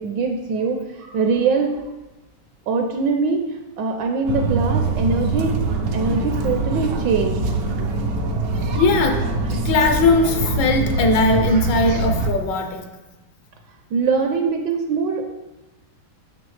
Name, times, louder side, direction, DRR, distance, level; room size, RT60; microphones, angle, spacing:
voice 1, 0.0-1.8 2.7-5.5 5.9-7.5 13.9-15.3, right 4 dB, 75° right, 4 dB, 1.1 m, -22 dB
sound 1, 4.3-12.3, right 3 dB, 90° right, 0.7 m, -23 dB
voice 2, 8.7-12.8, left 3 dB, 70° left, 5 dB, 1.2 m, -19 dB
6.0 x 6.0 x 3.2 m, 1.1 s
omnidirectional pair, 2.2 m